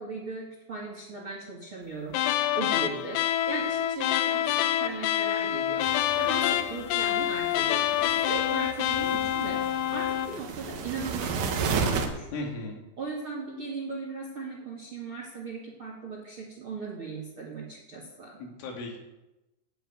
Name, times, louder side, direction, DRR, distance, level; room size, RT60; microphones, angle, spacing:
voice 1, 0.0-2.2 2.5-3.2 3.5-5.9 6.1-9.6 9.9-12.3 13.0-18.4, right 3 dB, 65° right, -1 dB, 1.3 m, -38 dB
sound 1, 2.1-10.4, left 11 dB, 90° left, 3.4 m, -27 dB
sound 2, 5.8-12.1, right 5 dB, 85° right, 1.9 m, -34 dB
voice 2, 12.3-12.8 18.4-19.0, left 2 dB, 75° left, 0 dB, 4.9 m, -36 dB
10.0 x 9.5 x 9.2 m, 0.99 s
omnidirectional pair, 5.9 m